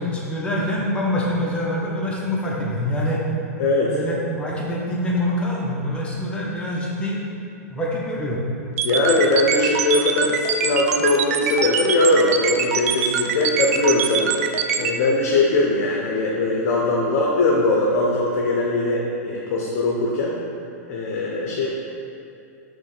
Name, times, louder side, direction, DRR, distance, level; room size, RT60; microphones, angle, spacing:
voice 1, 0.0-3.2 3.8-7.2 7.7-8.4, left 1 dB, 10° left, -5 dB, 0.8 m, -25 dB
voice 2, 3.6-3.9 8.8-14.3 14.8-20.4 20.9-21.7, left 2 dB, 55° left, -3 dB, 0.6 m, -20 dB
sound 1, 8.8-14.9, right 7 dB, 70° right, 0.4 m, -23 dB
5.4 x 3.1 x 3.2 m, 2.6 s
hypercardioid pair, 120°, 8 cm